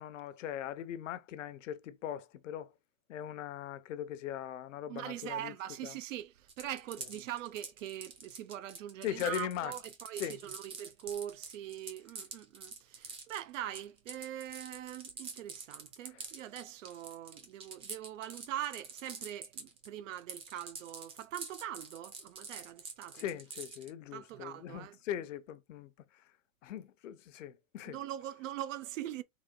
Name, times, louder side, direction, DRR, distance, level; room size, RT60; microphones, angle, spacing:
voice 1, 0.0-2.7 3.1-5.5 5.8-5.9 9.0-9.7 10.2-10.4 16.1-16.2 23.1-25.9 26.6-28.0, left 10 dB, 65° left, 0.8 m, -40 dB
voice 2, 4.9-23.2 24.1-25.0 27.9-29.2, right 12 dB, 70° right, 0.7 m, -42 dB
sound 1, 6.5-19.9 20.1-23.9, right 4 dB, 15° right, 0.6 m, -46 dB
4.1 x 3.1 x 3.7 m
supercardioid pair, 155°, 40 cm